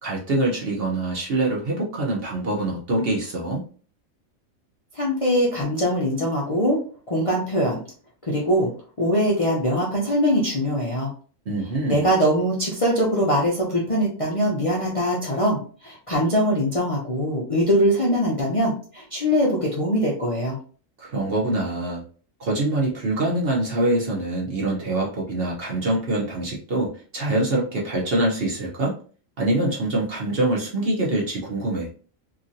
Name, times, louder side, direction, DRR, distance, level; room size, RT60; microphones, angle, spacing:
voice 1, 0.0-3.6 11.5-12.1 21.0-22.0 22.4-28.9 29.4-31.9, right 2 dB, 50° right, -3 dB, 0.9 m, -24 dB
voice 2, 4.9-6.8 7.1-7.8 8.2-8.7 9.0-11.1 11.9-20.6, equal, 35° left, -4 dB, 0.6 m, -22 dB
2.9 x 2.5 x 2.6 m, 0.41 s
omnidirectional pair, 1.4 m